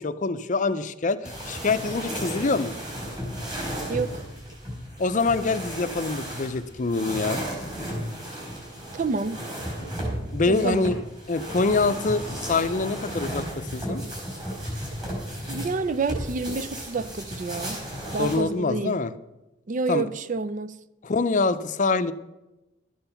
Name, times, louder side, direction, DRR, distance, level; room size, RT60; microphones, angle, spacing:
voice 1, 0.0-2.7 5.0-7.4 10.3-11.0 11.3-14.0 18.2-19.1 19.9-20.1 21.0-22.1, left 3 dB, 40° left, 0.5 m, -25 dB
sound 1, 1.2-18.4, equal, 25° right, 4.5 m, -34 dB
voice 2, 3.9-4.2 8.9-9.4 10.5-10.9 15.5-17.8 18.1-19.0 19.7-20.8, right 4 dB, 40° right, 0.4 m, -28 dB
12.5 x 8.9 x 5.7 m
head